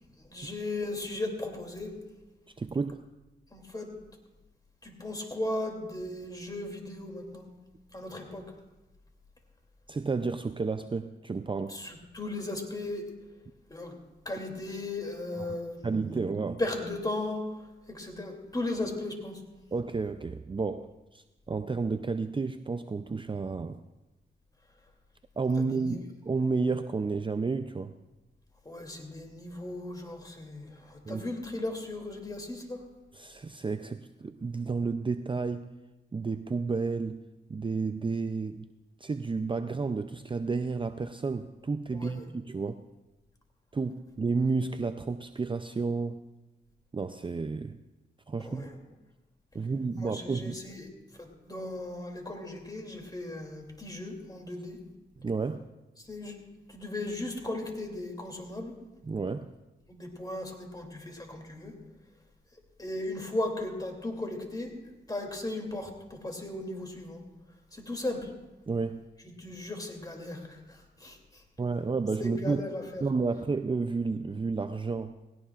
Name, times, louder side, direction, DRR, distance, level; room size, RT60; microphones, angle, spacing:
voice 1, 0.2-2.0 3.5-3.9 4.8-7.5 7.9-8.5 11.7-13.1 13.7-14.0 14.2-15.9 16.6-19.4 25.6-26.0 28.6-32.9 41.9-42.2 48.4-48.8 50.0-50.9 51.2-54.8 56.0-56.4 56.7-58.7 59.9-61.8 62.8-64.7 65.1-67.2 67.7-68.3 69.2-71.4 72.2-73.0, left 2 dB, 20° left, 2 dB, 2.9 m, -36 dB
voice 2, 2.6-3.0 9.9-11.8 15.4-15.6 15.8-16.6 19.7-23.8 25.4-27.9 31.1-31.2 33.1-35.7 36.1-37.2 37.5-38.7 39.0-42.8 43.7-46.2 46.9-47.8 48.3-48.6 49.5-50.6 55.2-55.7 59.1-59.5 68.7-69.0 71.6-72.6 73.0-75.1, right 4 dB, 25° right, 9 dB, 0.5 m, -31 dB
19.0 x 17.0 x 2.5 m, 1.0 s
cardioid pair, 65°, 19 cm